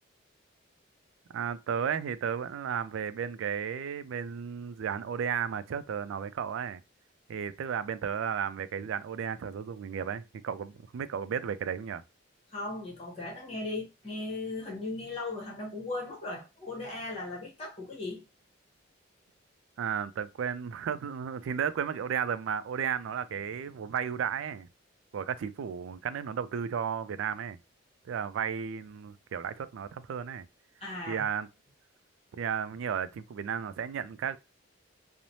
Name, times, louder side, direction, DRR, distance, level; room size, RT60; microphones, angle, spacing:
voice 1, 1.3-6.8 7.3-12.0 19.8-24.7 25.1-27.6 28.0-30.5 31.1-31.5 32.3-34.4, right 7 dB, 75° right, 0.3 m, -33 dB
voice 2, 12.5-18.2 30.8-31.3, left 2 dB, 30° left, 0.8 m, -37 dB
3.1 x 2.0 x 2.6 m
head